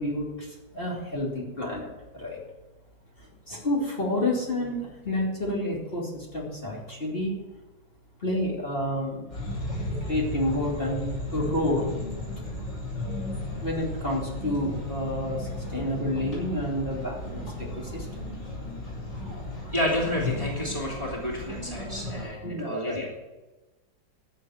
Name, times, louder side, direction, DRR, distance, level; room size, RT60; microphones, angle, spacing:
voice 1, 0.0-2.4 3.2-7.4 8.2-9.2 10.0-11.9 13.6-18.3 22.4-23.0, left 1 dB, 30° left, -3 dB, 3.1 m, -30 dB
sound 1, 9.3-22.2, left 1 dB, 75° left, 6.9 m, -35 dB
voice 2, 19.7-23.1, left 1 dB, 15° right, -3 dB, 2.8 m, -30 dB
12.5 x 7.3 x 9.2 m, 1.1 s
omnidirectional pair, 1.9 m